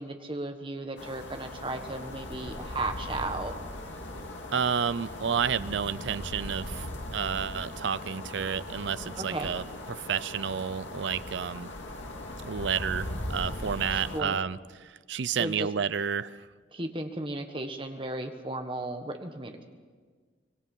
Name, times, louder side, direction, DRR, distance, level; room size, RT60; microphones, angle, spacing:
voice 1, 0.0-3.7 9.2-9.5 13.9-14.4 15.4-15.7 16.7-19.6, right 2 dB, 25° right, 5 dB, 1.4 m, -35 dB
sound 1, 1.0-14.2, left 1 dB, 80° left, 2.3 m, -39 dB
voice 2, 4.5-11.7 12.4-16.5, right 7 dB, 70° right, 16 dB, 0.5 m, -31 dB
25.0 x 21.0 x 5.5 m, 1.5 s
head